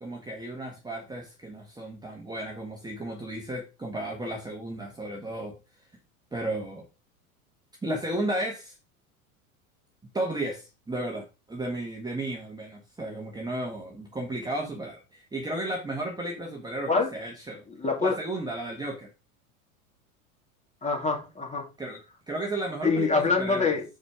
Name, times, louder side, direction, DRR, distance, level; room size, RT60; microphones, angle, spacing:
voice 1, 0.0-5.6 6.3-6.8 7.8-8.8 10.1-17.6 18.0-19.1 21.8-22.0 22.3-23.8, right 1 dB, 10° right, 1.6 m, -34 dB
voice 2, 17.7-18.2 20.8-21.6 22.8-23.8, left 4 dB, 15° left, 2.7 m, -25 dB
6.5 x 5.0 x 4.8 m
hypercardioid pair, 90°, 44 cm